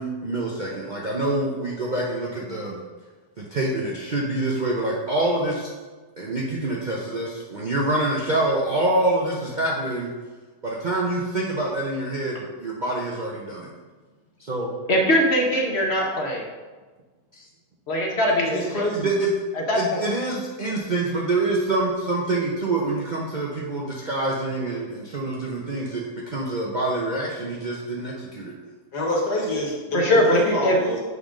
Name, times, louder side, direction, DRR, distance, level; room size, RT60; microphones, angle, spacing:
voice 1, 0.0-2.8 3.4-5.7 6.2-10.1 10.6-13.7 14.4-14.7 17.3-17.4 18.9-19.3 19.7-28.5, right 2 dB, 70° right, -4 dB, 0.4 m, -26 dB
voice 2, 14.9-16.5 17.9-18.8 19.5-20.0 29.9-30.8, equal, 45° left, 0 dB, 1.0 m, -21 dB
voice 3, 18.4-19.1 28.9-31.0, left 1 dB, 65° left, -2 dB, 2.0 m, -26 dB
6.8 x 3.7 x 5.1 m, 1.3 s
omnidirectional pair, 1.9 m